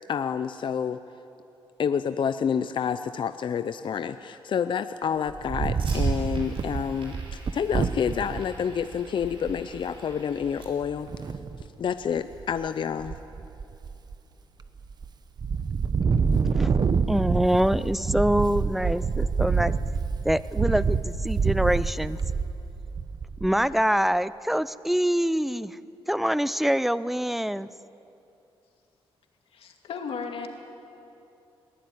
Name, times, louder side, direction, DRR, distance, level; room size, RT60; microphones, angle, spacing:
voice 1, 0.1-1.0 1.8-11.1 11.8-13.1, left 7 dB, 55° left, 11 dB, 0.6 m, -28 dB
Fire, 5.0-11.0, right 3 dB, 65° right, 5.6 m, -46 dB
Wind, 5.3-8.4 8.9-9.0 9.2-9.6 11.1-11.7 12.2-12.7 13.0-14.2 14.6-15.1 15.4-23.6, right 5 dB, 45° right, 1.0 m, -27 dB
voice 2, 17.1-19.7 20.2-22.2 23.4-25.8 26.1-27.7, equal, ahead, 16 dB, 0.5 m, -25 dB
voice 3, 29.5-30.5, left 5 dB, 75° left, 3 dB, 2.4 m, -35 dB
21.5 x 15.0 x 9.3 m, 2.8 s
cardioid pair, 90°, 10 cm